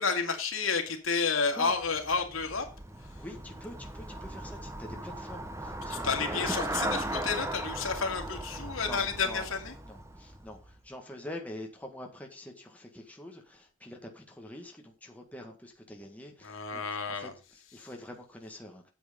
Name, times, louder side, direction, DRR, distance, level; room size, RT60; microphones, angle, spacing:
voice 1, 0.0-2.7 5.9-6.6 7.1-9.7 16.4-17.3, left 5 dB, 85° left, 2.4 m, -30 dB
Traffic noise roadway noise / Bicycle, 1.7-10.9, right 1 dB, 15° right, 0.9 m, -38 dB
voice 2, 3.2-6.8 8.8-9.5 9.8-18.9, left 1 dB, 5° left, 1.8 m, -45 dB
9.1 x 7.9 x 5.3 m
head